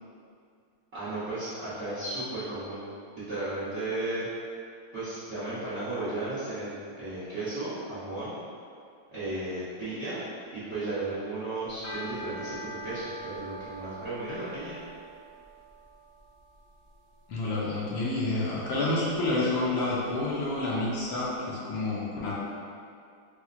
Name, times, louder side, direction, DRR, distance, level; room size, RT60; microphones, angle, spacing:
voice 1, 0.9-2.8 3.3-4.3 4.9-8.3 9.1-10.2 10.5-14.8, right 2 dB, 55° right, -14 dB, 0.7 m, -34 dB
sound 1, 11.7-21.0, right 1 dB, 60° left, 1.1 m, -45 dB
voice 2, 17.3-22.3, left 2 dB, 75° left, -6 dB, 1.3 m, -29 dB
4.3 x 2.1 x 2.4 m, 2.3 s
omnidirectional pair, 2.3 m